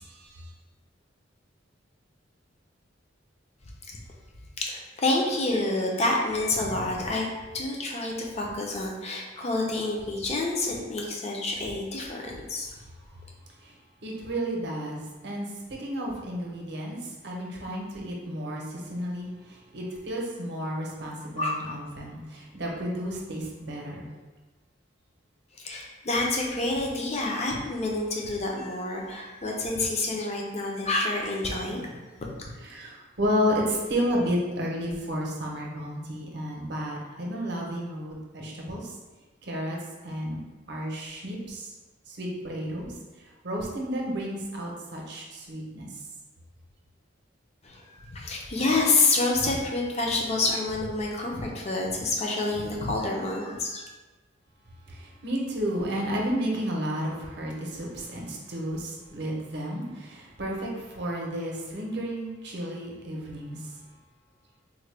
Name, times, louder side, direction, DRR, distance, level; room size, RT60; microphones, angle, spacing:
voice 1, 4.7-7.3 7.5-12.7 21.4-21.6 25.6-32.0 32.4-32.5 47.6-53.8, left 2 dB, 35° left, -1 dB, 0.5 m, -28 dB
voice 2, 14.0-15.4 15.8-17.0 17.2-18.6 18.9-19.3 19.7-24.0 32.7-32.9 33.2-38.8 39.5-39.8 40.0-40.4 40.7-41.6 42.2-42.9 43.4-45.9 55.2-63.6, equal, 60° right, -2 dB, 0.7 m, -31 dB
3.8 x 2.2 x 3.2 m, 1.2 s
head